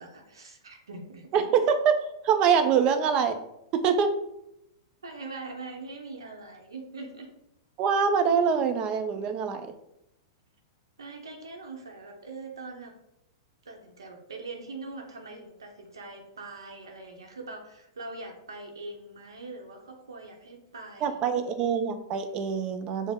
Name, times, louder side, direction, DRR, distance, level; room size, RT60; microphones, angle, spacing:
voice 1, 0.0-1.5 5.0-7.3 11.0-12.9 13.6-21.2, right 3 dB, 90° right, 2 dB, 0.7 m, -42 dB
voice 2, 1.3-2.0 2.2-3.3 3.7-4.1 7.8-9.7 21.0-23.1, right 6 dB, 40° right, 8 dB, 0.5 m, -24 dB
5.1 x 2.1 x 3.6 m, 0.80 s
hypercardioid pair, 115°, 2 cm